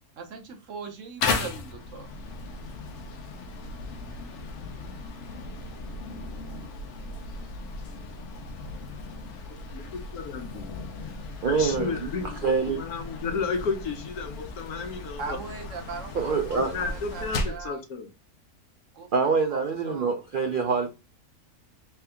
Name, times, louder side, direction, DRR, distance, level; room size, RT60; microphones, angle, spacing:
voice 1, 0.2-2.1 15.2-17.8 18.9-20.1 20.7-20.9, right 4 dB, 60° right, 1.0 m, -40 dB
sound 1, 1.2-17.7, left 3 dB, 60° left, 0.9 m, -36 dB
voice 2, 9.7-10.7 11.4-15.4 16.5-18.1 19.9-20.1, left 5 dB, 75° left, 1.3 m, -33 dB
voice 3, 11.4-12.8 16.1-16.7 17.3-17.4 19.1-20.9, right 5 dB, 75° right, 0.4 m, -26 dB
3.4 x 2.9 x 3.4 m
omnidirectional pair, 1.6 m